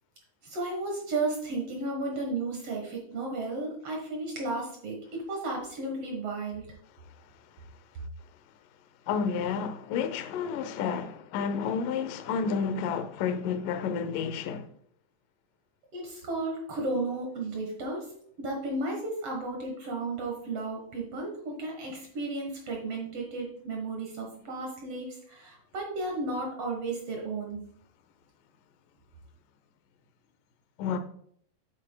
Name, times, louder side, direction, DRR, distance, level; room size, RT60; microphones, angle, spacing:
voice 1, 0.4-6.7 15.9-18.0 18.4-27.6, right 2 dB, 65° right, 1.5 m, -34 dB
voice 2, 9.1-14.6 30.8-31.0, left 6 dB, 80° left, 1.9 m, -30 dB
9.0 x 8.4 x 2.2 m
omnidirectional pair, 4.7 m